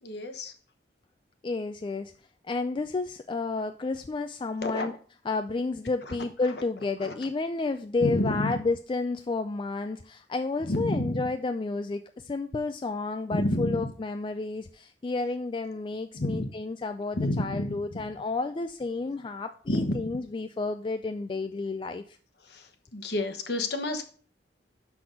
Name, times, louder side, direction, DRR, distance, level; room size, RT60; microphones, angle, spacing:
voice 1, 0.0-0.5 4.6-5.0 6.0-6.2 6.5-6.6 7.0-7.2 8.0-8.6 10.6-11.3 13.3-13.9 16.1-16.5 17.1-17.7 19.7-20.1 22.4-24.0, left 1 dB, 60° left, 7 dB, 1.0 m, -30 dB
voice 2, 1.4-2.1 2.5-4.9 5.3-22.2, left 3 dB, 25° left, 8 dB, 0.3 m, -31 dB
6.0 x 6.0 x 5.1 m, 0.44 s
head